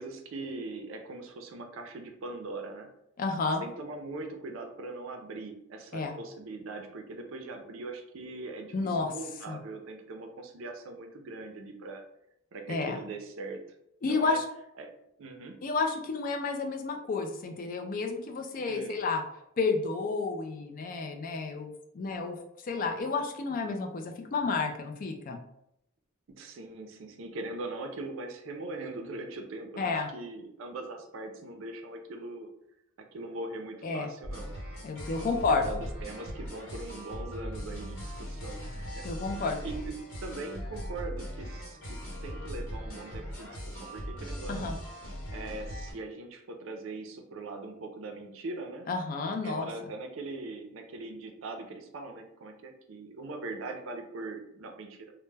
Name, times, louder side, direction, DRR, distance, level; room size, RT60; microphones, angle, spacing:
voice 1, 0.0-2.9 3.6-12.0 12.5-13.7 14.1-14.4 14.8-14.9 15.2-15.6 18.6-18.9 26.4-32.5 33.0-34.5 35.2-39.9 40.2-44.7 45.3-48.9 49.4-55.1, right 2 dB, 60° right, 4 dB, 0.4 m, -41 dB
voice 2, 3.2-3.6 5.9-6.2 8.7-9.1 9.5-9.6 12.7-13.0 14.0-14.4 15.6-19.2 19.6-22.4 22.6-25.4 29.8-30.1 33.8-34.1 34.8-35.8 39.0-39.6 44.5-44.8 48.9-49.7, left 4 dB, 40° left, 4 dB, 0.3 m, -31 dB
sound 1, 34.2-45.9, equal, 65° left, 1.0 m, -39 dB
2.1 x 2.0 x 3.2 m, 0.79 s
head